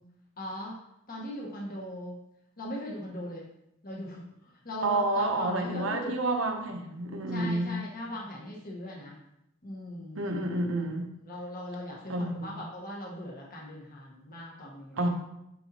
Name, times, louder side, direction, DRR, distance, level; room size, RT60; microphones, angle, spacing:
voice 1, 0.4-0.7 1.1-2.2 2.6-3.4 3.8-6.1 7.3-9.2 9.6-10.8 11.2-15.0, left 1 dB, 45° left, -4 dB, 1.5 m, -39 dB
voice 2, 4.8-7.8 10.2-11.1 12.1-12.5 15.0-15.1, right 2 dB, 80° right, 3 dB, 1.0 m, -29 dB
10.5 x 4.1 x 3.0 m, 0.82 s
head